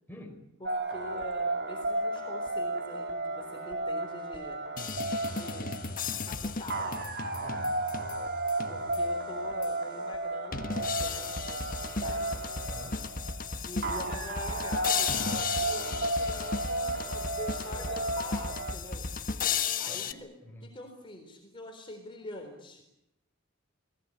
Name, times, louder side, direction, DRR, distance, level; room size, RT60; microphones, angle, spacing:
voice 1, 0.1-0.4 7.4-7.8 12.0-13.1 19.9-20.7, left 1 dB, 10° left, 2 dB, 4.6 m, -48 dB
voice 2, 0.6-4.6 5.3-5.8 6.3-7.0 8.7-11.6 12.0-12.3 13.6-19.1 19.8-20.3 20.6-22.8, left 1 dB, 25° left, 3 dB, 4.0 m, -44 dB
sound 1, 0.6-18.7, right 2 dB, 60° right, 3.4 m, -34 dB
sound 2, 4.8-9.2 9.6-9.7 10.5-20.1, left 5 dB, 45° left, 1.4 m, -35 dB
29.5 x 19.5 x 8.8 m, 0.82 s
head